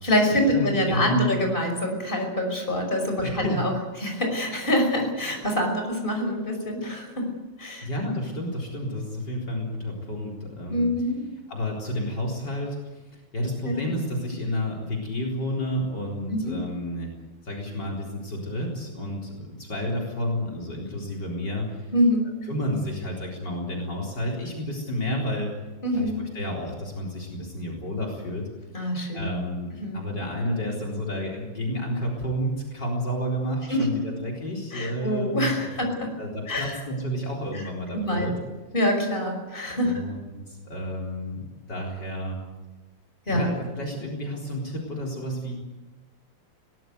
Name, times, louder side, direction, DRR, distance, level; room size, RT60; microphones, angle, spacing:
voice 1, 0.0-3.7 4.0-7.3 7.6-7.9 10.7-11.2 13.6-13.9 16.3-16.6 21.9-22.4 25.8-26.2 28.7-29.3 29.8-30.0 33.7-33.9 34.7-36.2 36.5-36.8 37.9-38.3 38.7-40.0 43.3-43.4, left 1 dB, 25° left, 3 dB, 5.7 m, -25 dB
voice 2, 0.5-1.4 3.2-3.6 7.8-10.9 11.5-17.1 17.4-21.9 22.5-25.6 25.9-28.4 28.8-35.7 36.2-38.3 39.8-42.4 43.3-45.5, equal, 55° left, 1 dB, 4.7 m, -31 dB
22.5 x 19.0 x 8.1 m, 1.2 s
omnidirectional pair, 2.2 m